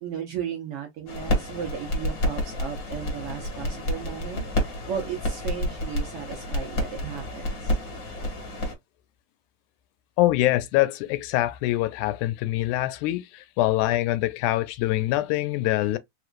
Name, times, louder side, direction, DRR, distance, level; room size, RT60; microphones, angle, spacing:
voice 1, 0.0-4.4 4.9-7.8, right 8 dB, 70° right, 1.4 m, -35 dB
sound 1, 1.1-8.7, left 1 dB, 40° left, 2.0 m, -29 dB
voice 2, 10.2-16.0, left 16 dB, 85° left, 2.0 m, -24 dB
4.7 x 3.0 x 2.5 m
omnidirectional pair, 3.4 m